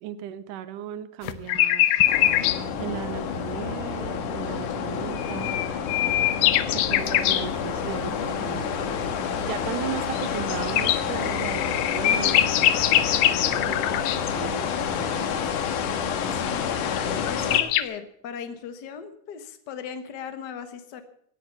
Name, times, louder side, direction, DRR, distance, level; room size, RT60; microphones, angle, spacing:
voice 1, 0.0-1.9 2.8-5.6 6.7-12.4 13.5-15.6, right 11 dB, 80° right, 13 dB, 2.4 m, -36 dB
sound 1, 1.2-2.6 5.2-7.5 10.1-14.3 17.0-17.1 17.2-17.8, left 13 dB, 90° left, 2.5 m, -23 dB
sound 2, 2.1-17.6, left 7 dB, 70° left, 2.7 m, -29 dB
sound 3, 6.8-16.8, left 2 dB, 15° left, 4.9 m, -49 dB
voice 2, 16.3-21.0, left 7 dB, 50° left, 8 dB, 1.2 m, -37 dB
18.0 x 9.1 x 7.1 m, 0.66 s
omnidirectional pair, 3.8 m